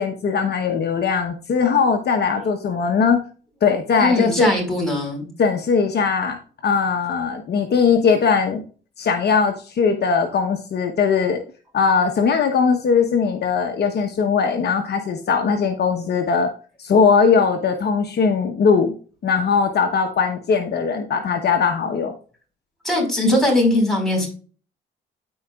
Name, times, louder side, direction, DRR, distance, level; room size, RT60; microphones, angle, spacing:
voice 1, 0.0-3.2 3.6-4.5 5.4-6.4 6.6-8.6 9.0-11.4 11.7-16.5 16.8-18.9 19.2-22.1, left 5 dB, 55° left, 4 dB, 1.0 m, -19 dB
voice 2, 4.0-5.3 22.8-24.3, left 1 dB, ahead, -1 dB, 4.5 m, -20 dB
14.0 x 4.8 x 2.4 m, 0.39 s
cardioid pair, 90°, 20 cm